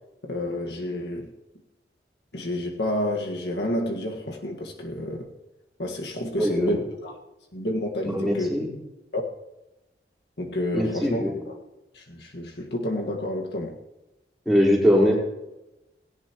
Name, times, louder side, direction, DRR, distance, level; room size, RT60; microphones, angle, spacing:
voice 1, 0.2-1.3 2.3-5.3 5.8-7.1 7.5-8.5 9.1-9.2 10.4-11.2 11.9-13.8, left 1 dB, 75° left, 1 dB, 1.8 m, -29 dB
voice 2, 6.3-6.8 8.0-8.7 10.7-11.3 14.5-15.2, equal, ahead, -5 dB, 4.2 m, -21 dB
17.5 x 17.0 x 3.1 m, 0.99 s
head